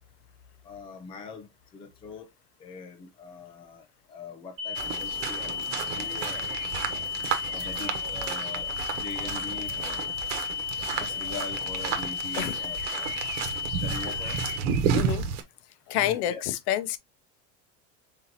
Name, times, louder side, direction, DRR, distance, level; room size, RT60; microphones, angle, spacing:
voice 1, 0.6-2.3 2.6-6.5 7.5-10.2 10.8-13.2 13.8-14.4 15.9-16.4, left 4 dB, 15° left, 0.5 m, -42 dB
sound 1, 4.6-14.6, left 7 dB, 35° right, 2.3 m, -33 dB
sound 2, 4.8-15.4, right 7 dB, 80° right, 1.2 m, -32 dB
voice 2, 14.9-15.2 15.9-17.0, left 12 dB, 65° left, 0.8 m, -28 dB
4.7 x 3.8 x 2.8 m
cardioid pair, 175°, 36 cm